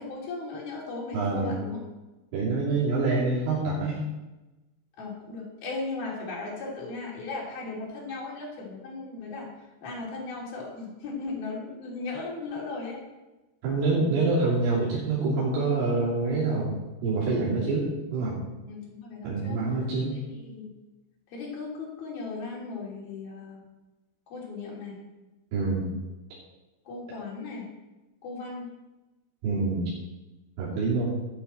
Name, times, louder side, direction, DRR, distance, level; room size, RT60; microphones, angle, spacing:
voice 1, 0.0-1.8 5.0-9.5 9.8-13.0 18.7-19.6 20.4-20.7 21.3-23.6 24.3-25.0 26.9-27.7 28.2-28.7, left 3 dB, 55° left, -3 dB, 4.5 m, -37 dB
voice 2, 1.1-1.6 2.3-4.0 13.6-16.7 17.0-18.4 19.2-20.1 25.5-25.9 29.4-29.9 30.6-31.2, right 3 dB, 80° right, -8 dB, 5.7 m, -26 dB
12.0 x 11.0 x 4.4 m, 1.1 s
omnidirectional pair, 5.6 m